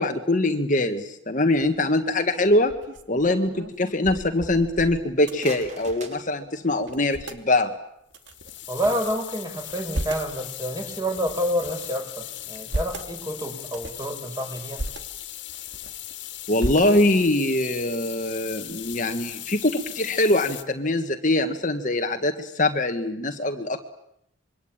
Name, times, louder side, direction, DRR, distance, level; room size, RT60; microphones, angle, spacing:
voice 1, 0.0-2.7 3.1-7.7 16.5-23.8, left 2 dB, 40° left, 6 dB, 1.7 m, -23 dB
sound 1, 1.6-1.9 2.4-6.2 6.5-6.6 6.8-7.4 8.1-9.1 9.6-10.3 10.9-11.9 12.4-13.1 13.6-14.1 14.6-15.0 15.5-16.1 16.6-17.3, right 1 dB, 60° right, 2.6 m, -35 dB
sound 2, 5.0-7.1, right 3 dB, 35° right, 5.0 m, -44 dB
sound 3, 8.2-20.6, left 13 dB, 60° left, 2.3 m, -38 dB
voice 2, 8.7-14.8, equal, 20° right, 4 dB, 5.4 m, -28 dB
27.0 x 23.5 x 8.9 m, 0.76 s
head